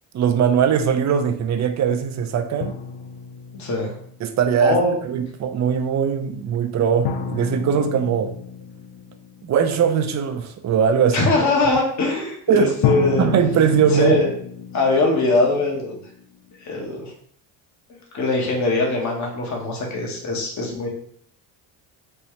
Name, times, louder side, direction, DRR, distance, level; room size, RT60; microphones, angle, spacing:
voice 1, 0.1-2.8 4.2-4.8 5.0-8.3 9.4-11.2 12.5-12.7 13.2-14.2, right 7 dB, 40° right, 8 dB, 0.5 m, -20 dB
sound 1, 2.6-4.4 7.0-9.9 12.8-16.6, left 6 dB, 60° left, 0.6 m, -30 dB
voice 2, 3.5-3.9 4.6-5.0 11.1-13.3 13.9-14.3 14.7-16.0 16.6-17.1 18.1-20.9, left 2 dB, 40° left, -1 dB, 1.3 m, -21 dB
4.2 x 2.3 x 3.1 m, 0.62 s
supercardioid pair, 80°, 43 cm